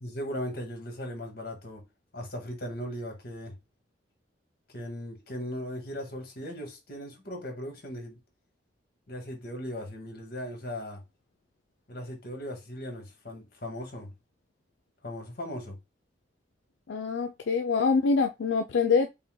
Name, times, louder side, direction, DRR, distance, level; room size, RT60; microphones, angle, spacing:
voice 1, 0.0-1.8 2.1-3.5 4.7-8.2 9.1-11.0 11.9-14.1 15.0-15.8, equal, 55° left, 1.6 m, -38 dB
voice 2, 16.9-19.1, left 4 dB, 85° left, 0.4 m, -25 dB
5.4 x 2.2 x 3.7 m
head